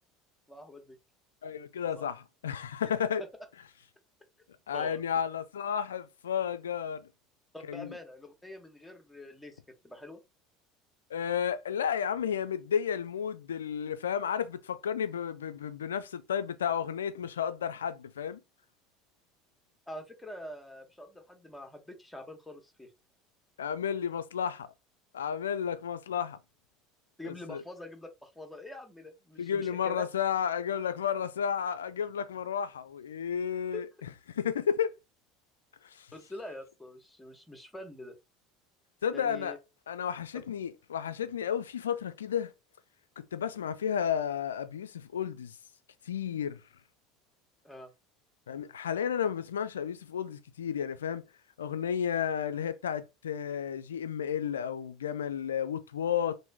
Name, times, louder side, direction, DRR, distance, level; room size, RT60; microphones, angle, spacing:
voice 1, 0.5-1.0 2.0-2.1 4.7-5.0 7.5-9.6 9.8-10.2 19.9-22.9 27.2-30.0 33.7-33.8 36.1-38.1 39.1-39.6 47.6-47.9, left 1 dB, 5° left, 1.0 m, -45 dB
voice 2, 1.4-3.2 4.7-7.1 7.7-7.9 11.1-18.4 23.6-24.7 25.1-26.4 27.2-27.6 29.4-33.9 34.3-35.0 35.8-36.1 39.0-39.5 39.9-42.5 43.2-45.6 46.1-46.6 48.5-51.3 51.6-56.4, left 8 dB, 80° left, 0.3 m, -32 dB
3.0 x 2.6 x 3.5 m
figure-of-eight pair, 70°, 0 cm